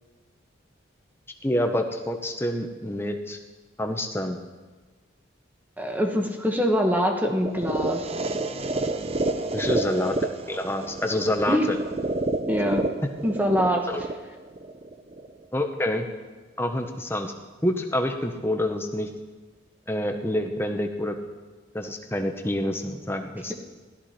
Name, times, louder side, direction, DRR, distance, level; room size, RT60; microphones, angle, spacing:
voice 1, 1.4-3.4 3.8-4.4 9.5-11.8 13.9-14.0 15.5-16.1 16.6-17.3 17.6-19.1 19.9-21.2 21.7-23.5, left 1 dB, 10° left, 4 dB, 1.0 m, -27 dB
voice 2, 5.8-8.0 11.5-11.7 12.5-12.8 13.2-13.9, equal, 10° right, 2 dB, 1.4 m, -24 dB
sound 1, 7.4-15.4, right 2 dB, 30° right, 0.6 m, -29 dB
17.0 x 13.0 x 4.4 m, 1.3 s
head